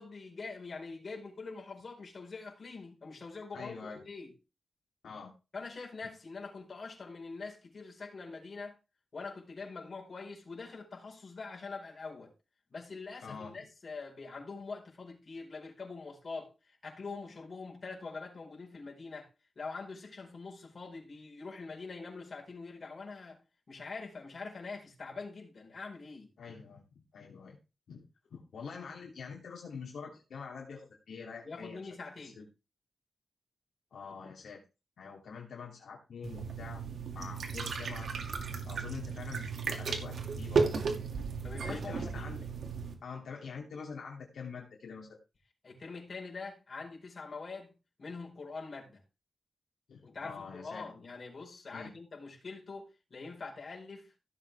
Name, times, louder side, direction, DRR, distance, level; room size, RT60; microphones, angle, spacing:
voice 1, 0.0-4.3 5.5-8.8 9.1-12.3 12.7-19.3 19.5-23.4 23.7-26.3 31.4-32.4 41.4-42.4 45.6-49.0 50.0-54.1, left 4 dB, 50° left, 4.8 m, -44 dB
voice 2, 3.5-4.0 5.0-5.3 13.2-13.6 26.4-26.8 27.1-27.6 27.9-28.1 28.3-31.8 32.2-32.4 33.9-34.6 35.0-36.8 37.1-38.1 38.7-40.8 41.6-42.4 43.0-45.2 49.9-50.8 51.7-51.9, left 5 dB, 85° left, 2.8 m, -45 dB
sound 1, 36.2-42.9, right 5 dB, 80° right, 2.4 m, -34 dB
15.5 x 7.5 x 3.5 m
cardioid pair, 75°, 0 cm